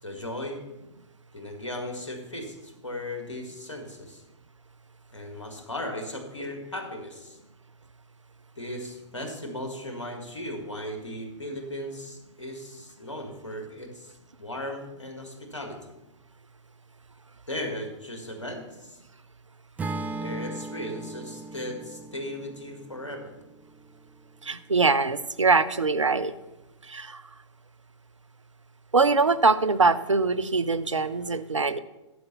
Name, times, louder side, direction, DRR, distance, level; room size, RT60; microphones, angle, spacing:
voice 1, 0.0-0.6 1.3-4.2 5.1-7.4 8.6-14.1 14.4-15.9 17.5-19.0 20.2-23.3, left 1 dB, 80° left, 4 dB, 1.9 m, -37 dB
Acoustic guitar / Strum, 19.8-24.0, right 3 dB, 10° right, 0.4 m, -37 dB
voice 2, 24.4-26.3 26.8-27.2 28.9-31.8, right 4 dB, 90° right, 14 dB, 0.6 m, -23 dB
11.0 x 5.4 x 6.8 m, 0.98 s
figure-of-eight pair, 110°, 15 cm